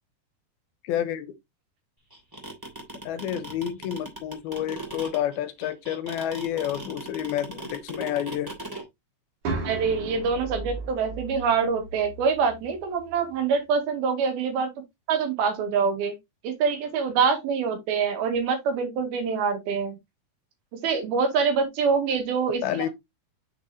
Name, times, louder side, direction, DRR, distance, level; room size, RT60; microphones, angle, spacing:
voice 1, 0.8-1.3 3.0-8.5 22.6-22.9, left 11 dB, 85° left, 2.8 m, -29 dB
sound 1, 2.1-8.8, right 1 dB, 5° right, 2.4 m, -38 dB
sound 2, 9.4-13.4, right 3 dB, 55° right, 4.2 m, -36 dB
voice 2, 9.6-14.7 15.1-16.1 16.4-20.0 20.8-22.9, right 5 dB, 85° right, 3.7 m, -25 dB
7.4 x 6.2 x 2.8 m
omnidirectional pair, 4.3 m